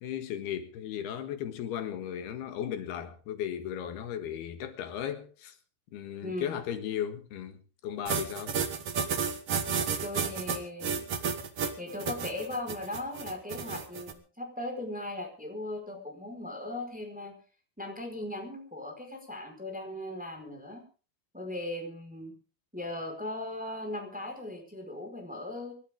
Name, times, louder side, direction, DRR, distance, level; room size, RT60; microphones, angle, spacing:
voice 1, 0.0-5.6 5.9-8.6, left 9 dB, 80° left, 3.6 m, -36 dB
voice 2, 6.2-6.6 10.0-11.1 11.8-17.3 17.8-20.8 21.3-22.3 22.7-25.7, left 1 dB, ahead, 4.3 m, -38 dB
sound 1, 8.1-14.1, right 6 dB, 50° right, 2.0 m, -32 dB
27.0 x 12.5 x 3.7 m
omnidirectional pair, 4.5 m